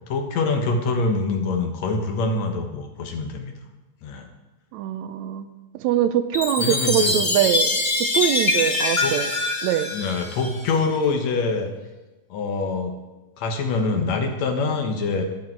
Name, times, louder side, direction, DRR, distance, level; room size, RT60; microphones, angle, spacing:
voice 1, 0.1-3.5 4.0-4.3 6.6-7.1 9.0-9.1 9.9-11.7 12.3-12.9 13.4-15.2, left 3 dB, 70° left, 4 dB, 2.6 m, -24 dB
voice 2, 4.7-5.5 5.7-9.3 9.6-9.9, right 11 dB, 80° right, 11 dB, 1.9 m, -23 dB
Chime, 6.3-10.9, left 2 dB, 40° left, 0.7 m, -24 dB
14.0 x 10.5 x 4.6 m, 1.1 s
omnidirectional pair, 3.3 m